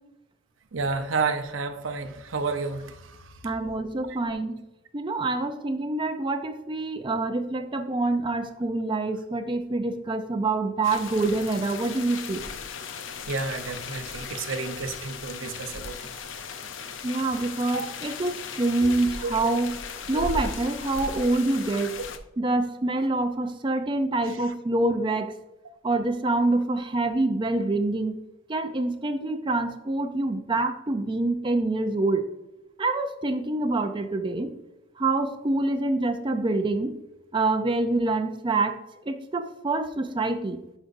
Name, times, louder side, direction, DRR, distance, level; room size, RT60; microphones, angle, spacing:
voice 1, 0.7-3.4 4.1-4.2 13.3-16.1 17.7-17.9 18.8-18.9 19.2-19.5 20.1-20.2 24.3-24.4, right 4 dB, 90° right, 7 dB, 0.7 m, -31 dB
voice 2, 3.4-4.6 4.9-12.4 17.0-19.7 20.1-22.0 22.4-25.3 25.8-28.2 28.5-32.2 32.8-34.5 35.0-36.9 37.3-38.8 39.1-40.6, right 2 dB, 25° right, 6 dB, 0.5 m, -26 dB
sound 1, 10.8-22.2, left 5 dB, 75° left, 0.6 m, -37 dB
11.0 x 5.2 x 2.6 m, 0.95 s
head